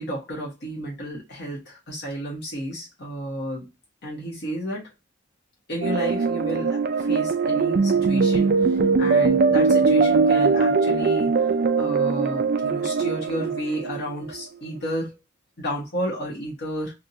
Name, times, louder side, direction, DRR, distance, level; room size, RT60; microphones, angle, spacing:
voice 1, 0.0-3.7 4.0-4.9 5.7-11.5 11.8-15.2 15.6-16.9, equal, 50° left, -3 dB, 1.2 m, -32 dB
sound 1, 5.8-14.4, right 4 dB, 50° right, 0.4 m, -21 dB
3.6 x 2.8 x 2.6 m, 0.23 s
head